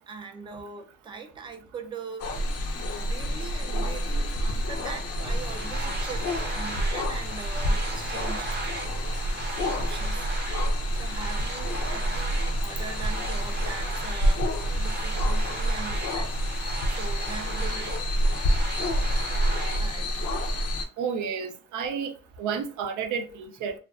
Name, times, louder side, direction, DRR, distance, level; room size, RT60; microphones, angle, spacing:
voice 1, 0.1-2.6 2.9-8.6 9.7-10.3 10.9-18.0 19.8-20.3, right 5 dB, 15° right, 0.4 m, -41 dB
sound 1, 2.2-20.8, equal, 55° left, 0.5 m, -28 dB
sound 2, 5.2-19.8, right 2 dB, 35° right, 0.8 m, -37 dB
voice 2, 21.0-22.1 22.4-23.8, right 6 dB, 80° right, 0.5 m, -31 dB
2.4 x 2.2 x 2.3 m
cardioid pair, 90°, 30 cm